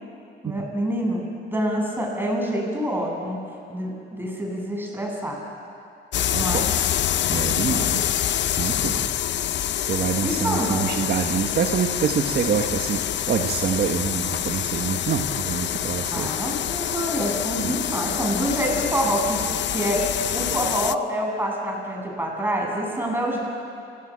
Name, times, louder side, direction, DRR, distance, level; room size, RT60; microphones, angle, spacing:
voice 1, 0.4-1.2 1.5-3.4 3.7-5.4 6.4-6.7 10.2-10.8 16.1-23.4, equal, 10° right, 0 dB, 7.8 m, -26 dB
sound 1, 6.1-21.0, left 11 dB, 65° left, 0.7 m, -26 dB
voice 2, 6.3-6.7 7.3-8.1 8.6-9.1 9.8-13.0 13.3-16.3 17.6-17.8, right 7 dB, 55° right, 4 dB, 1.5 m, -26 dB
30.0 x 17.0 x 8.7 m, 2.5 s
cardioid pair, 90°, 20 cm